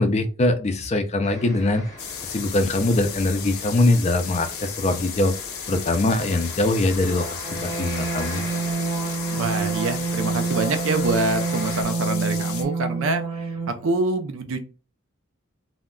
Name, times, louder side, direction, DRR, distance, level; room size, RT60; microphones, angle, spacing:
voice 1, 0.0-1.8 2.3-5.3 5.7-8.4, left 2 dB, 30° left, 8 dB, 0.4 m, -22 dB
sound 1, 1.2-11.8, left 1 dB, 15° left, 0.9 m, -40 dB
sound 2, 2.0-12.6, left 8 dB, 85° left, 0.6 m, -35 dB
sound 3, 7.1-13.9, right 4 dB, 25° right, 0.7 m, -27 dB
voice 2, 9.3-14.6, right 2 dB, 65° right, 8 dB, 0.5 m, -26 dB
2.2 x 2.1 x 3.6 m, 0.36 s
head